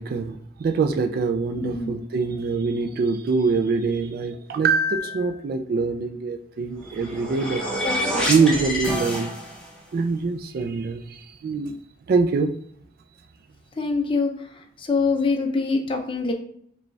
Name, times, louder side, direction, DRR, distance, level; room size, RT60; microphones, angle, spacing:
voice 1, 0.0-7.6 8.3-9.3 9.9-11.7 12.1-12.5, right 4 dB, 55° right, 6 dB, 0.3 m, -24 dB
voice 2, 1.6-2.0 7.8-8.2 13.8-14.3 14.8-16.3, left 4 dB, 30° left, 3 dB, 0.5 m, -24 dB
sound 1, 6.8-9.8, equal, 5° left, 1.1 m, -27 dB
4.9 x 2.3 x 3.2 m, 0.64 s
head